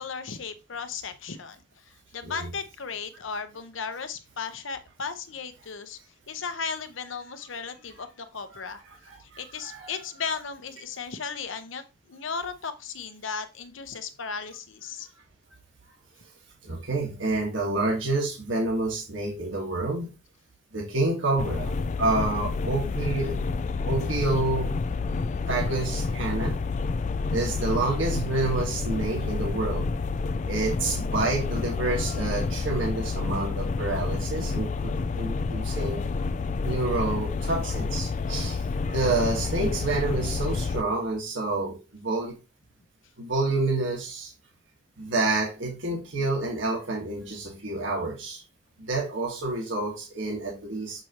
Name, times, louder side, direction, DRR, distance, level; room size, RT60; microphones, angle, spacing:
voice 1, 0.0-6.0 6.3-8.8 9.2-15.1, left 5 dB, 80° left, 10 dB, 0.9 m, -36 dB
voice 2, 8.9-9.9 16.6-20.1 20.7-23.4 23.8-24.8 25.5-26.6 27.3-29.9 30.5-36.2 36.6-42.4 43.2-44.3 45.0-48.4 48.8-51.0, right 2 dB, 75° right, -1 dB, 1.6 m, -28 dB
sound 1, 21.4-40.8, left 4 dB, 35° left, 0.3 m, -29 dB
6.5 x 5.8 x 2.9 m, 0.28 s
head